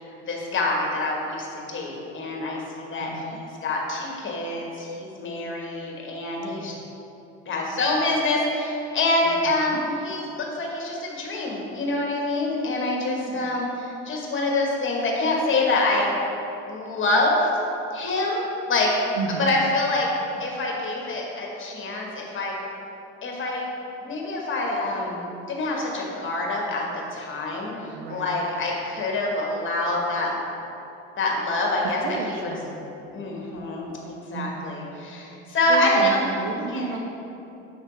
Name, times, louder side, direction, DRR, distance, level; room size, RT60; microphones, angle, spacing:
voice 1, 0.0-6.7 7.5-16.1 16.7-17.5 17.9-18.9 19.4-20.1 20.4-22.5 23.2-23.7 24.0-25.2 25.5-26.8 27.1-27.7 28.1-30.4 31.2-32.5 33.1-36.3 36.7-36.8, left 2 dB, 35° left, -2 dB, 1.5 m, -26 dB
voice 2, 3.0-3.4 6.5-6.9 9.2-9.8 13.0-13.5 19.2-19.5 27.9-28.4 32.0-33.0 34.3-34.9 35.7-37.0, right 4 dB, 85° right, 4 dB, 0.7 m, -33 dB
7.0 x 3.3 x 4.8 m, 2.9 s
supercardioid pair, 80°, 34 cm